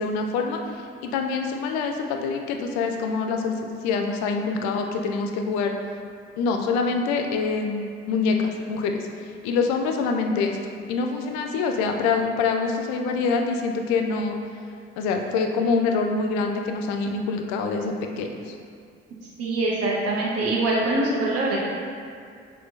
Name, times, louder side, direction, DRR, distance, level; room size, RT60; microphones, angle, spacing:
voice 1, 0.0-5.7 6.4-10.6 10.9-14.4 15.0-18.5, left 4 dB, 60° left, 3 dB, 0.5 m, -25 dB
voice 2, 19.4-21.6, right 2 dB, 50° right, -4 dB, 0.9 m, -23 dB
6.0 x 2.4 x 2.6 m, 2.3 s
figure-of-eight pair, 40°, 32 cm